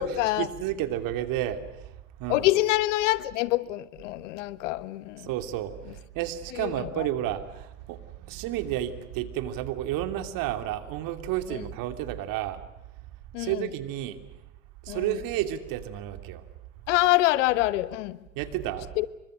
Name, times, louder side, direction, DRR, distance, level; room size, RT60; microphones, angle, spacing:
voice 1, 0.0-1.6 2.2-2.5 5.2-5.7 6.1-12.6 13.4-14.2 14.8-16.4 18.4-18.9, right 12 dB, 60° right, 2.9 m, -31 dB
voice 2, 2.3-5.3 6.5-7.1 13.3-13.6 14.9-15.1 16.9-18.2 19.0-19.1, left 17 dB, 75° left, 1.3 m, -25 dB
29.0 x 24.5 x 6.4 m
hypercardioid pair, 80°, 37 cm